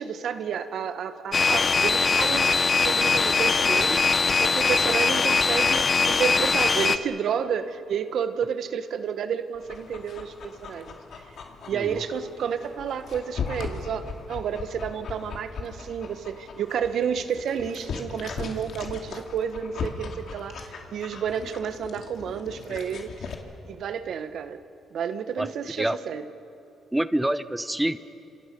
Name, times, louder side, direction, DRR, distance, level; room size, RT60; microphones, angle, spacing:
voice 1, 0.0-11.0 11.7-23.3 23.7-24.6 24.9-26.2, right 7 dB, 65° right, 10 dB, 1.3 m, -31 dB
sound 1, 1.3-7.0, left 4 dB, 35° left, 0.9 m, -21 dB
Dog, 9.5-23.3, left 5 dB, 65° left, 2.5 m, -38 dB
voice 2, 25.4-26.0 26.9-28.0, right 1 dB, 10° right, 13 dB, 0.8 m, -27 dB
30.0 x 26.5 x 5.4 m, 2.8 s
cardioid pair, 90°, 0 cm